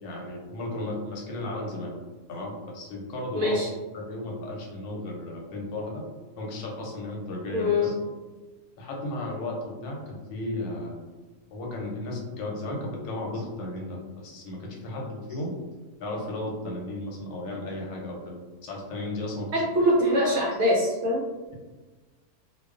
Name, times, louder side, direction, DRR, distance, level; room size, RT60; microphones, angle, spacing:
voice 1, 0.0-1.9 2.3-3.6 3.9-6.1 6.4-7.9 8.8-11.0 11.5-15.5 16.0-18.4 18.6-19.6, left 1 dB, 85° left, -1 dB, 1.2 m, -34 dB
voice 2, 3.3-3.7 7.5-7.9 19.5-21.2, left 1 dB, 70° right, -5 dB, 0.7 m, -23 dB
2.3 x 2.3 x 2.4 m, 1.3 s
omnidirectional pair, 1.6 m